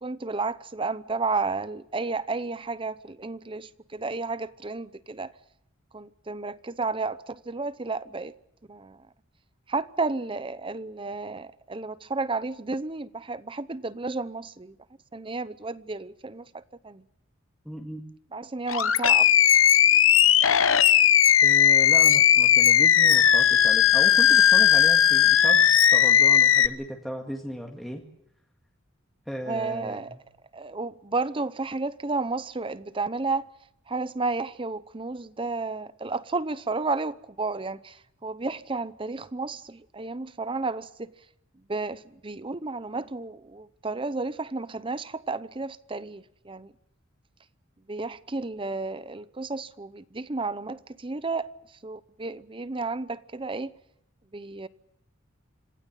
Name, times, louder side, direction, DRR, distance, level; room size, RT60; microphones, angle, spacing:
voice 1, 0.0-5.3 5.9-8.3 8.7-9.0 9.7-14.7 15.1-17.0 18.3-19.3 29.5-30.2 30.5-33.5 33.9-41.1 41.7-46.7 47.9-51.5 51.8-53.7 54.3-54.7, right 3 dB, 25° right, 0.8 m, -32 dB
voice 2, 17.7-18.0 21.4-28.0 29.3-30.2, equal, ahead, 2.0 m, -36 dB
Animal, 18.7-26.7, left 9 dB, 75° left, 1.0 m, -18 dB
26.5 x 16.5 x 7.5 m
head